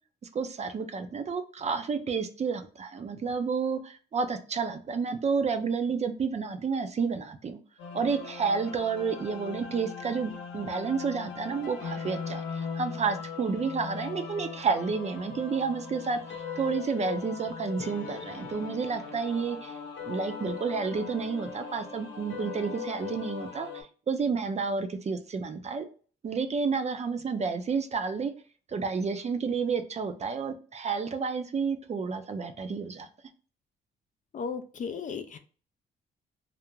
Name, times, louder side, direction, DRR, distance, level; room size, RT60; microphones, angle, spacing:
voice 1, 0.3-7.6 7.9-16.2 16.6-19.7 20.1-25.8 26.2-28.3 28.7-33.1, right 5 dB, 35° right, 0.4 m, -30 dB
sound 1, 7.8-23.8, left 6 dB, 75° left, 0.7 m, -39 dB
voice 2, 34.3-35.4, left 6 dB, 40° left, 0.4 m, -35 dB
2.4 x 2.1 x 3.0 m
cardioid pair, 90°, 20 cm